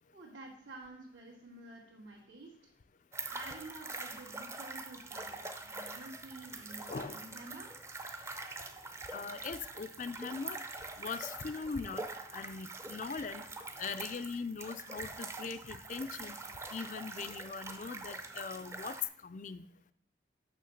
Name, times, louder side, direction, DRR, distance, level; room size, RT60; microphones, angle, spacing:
voice 1, 0.1-2.5 3.3-7.7, right 2 dB, 80° right, -7 dB, 2.3 m, -50 dB
sound 1, 3.1-19.0, right 3 dB, 15° right, 0.6 m, -44 dB
voice 2, 9.1-10.6 11.0-13.4 13.8-16.4 16.7-19.0 19.2-19.6, left 5 dB, 40° left, 12 dB, 0.4 m, -41 dB
6.7 x 6.2 x 6.4 m, 0.66 s
head